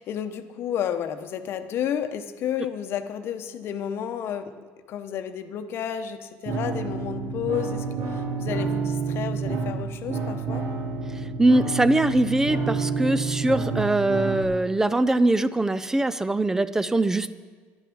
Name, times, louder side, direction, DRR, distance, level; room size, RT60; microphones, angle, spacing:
voice 1, 0.0-4.5 4.9-10.7, left 9 dB, 50° left, 9 dB, 0.9 m, -31 dB
sound 1, 6.5-14.5, right 4 dB, 55° right, 1.9 m, -29 dB
voice 2, 11.4-17.3, right 2 dB, 10° right, 15 dB, 0.4 m, -22 dB
11.5 x 11.0 x 6.2 m, 1.5 s
cardioid pair, 135°, 5 cm